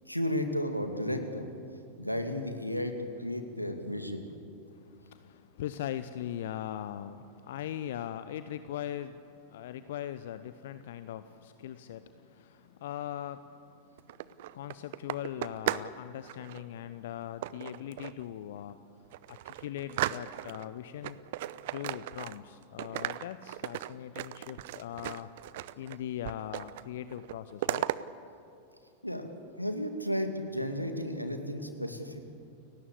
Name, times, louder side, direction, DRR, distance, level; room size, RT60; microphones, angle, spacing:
voice 1, 0.1-1.5 2.0-2.9 3.2-4.3 29.0-32.2, equal, 90° left, 6 dB, 2.4 m, -33 dB
voice 2, 4.7-14.1 14.5-18.8 19.3-21.2 21.7-25.3 25.8-27.9, left 11 dB, 55° left, 12 dB, 0.9 m, -40 dB
sound 1, 14.0-15.9 16.2-16.6 17.4-18.2 18.7-18.8 19.1-20.7 21.0-22.5 22.8-26.0 26.2-26.9 27.1-28.0, right 15 dB, 50° right, 0.7 m, -36 dB
30.0 x 18.5 x 8.4 m, 2.5 s
figure-of-eight pair, 90°, 0 cm